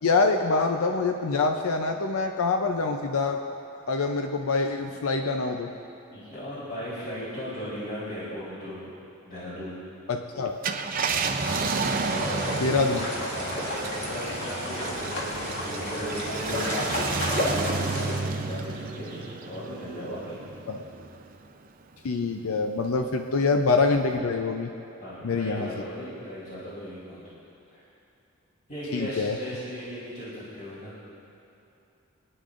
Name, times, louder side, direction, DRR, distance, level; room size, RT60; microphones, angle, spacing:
voice 1, 0.0-3.4 3.9-5.7 10.1-10.6 12.6-13.0 20.7-20.8 22.0-24.7 25.2-25.7 28.9-29.4, left 3 dB, 90° left, 5 dB, 0.6 m, -25 dB
voice 2, 6.1-8.8 9.3-9.8 10.9-11.3 11.9-20.4 25.0-27.2 27.7-27.8 28.7-30.9, equal, 40° left, -10 dB, 3.5 m, -37 dB
Car, 10.5-21.3 21.8-21.9 23.9-24.2, right 4 dB, 40° right, 0.6 m, -32 dB
sound 1, 11.4-18.2, left 1 dB, 60° left, 2.0 m, -32 dB
28.5 x 10.0 x 2.5 m, 2.8 s
head